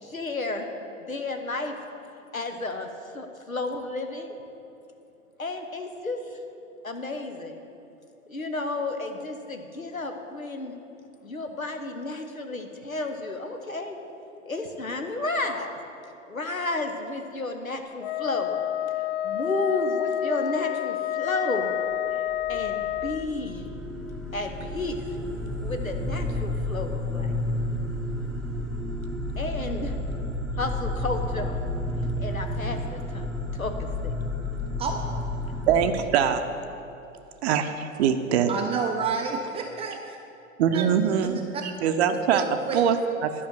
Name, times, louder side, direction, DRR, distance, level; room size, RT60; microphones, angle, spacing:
voice 1, 0.0-0.7 1.0-1.8 2.3-2.9 3.1-4.4 5.4-6.4 6.8-7.6 8.3-10.7 11.2-14.0 14.5-15.7 16.3-18.6 18.9-21.7 22.1-22.2 22.5-23.6 24.3-25.2 25.6-27.3 29.3-29.9 30.6-31.6 32.2-33.7 34.0-34.2, left 2 dB, 90° left, 5 dB, 1.0 m, -32 dB
Wind instrument woodwind instrument, 18.0-23.3, left 12 dB, 50° left, 0.4 m, -29 dB
sound 1, 22.3-35.9, left 1 dB, ahead, 0.8 m, -31 dB
voice 2, 35.7-36.4 37.4-37.7 38.0-38.5 40.6-42.4 42.7-43.3, right 8 dB, 50° right, 8 dB, 0.7 m, -23 dB
voice 3, 38.5-40.2 40.7-40.9 41.2-41.6 42.3-42.8, right 5 dB, 15° right, 2 dB, 0.4 m, -30 dB
11.0 x 5.7 x 7.3 m, 2.9 s
figure-of-eight pair, 90°, 40 cm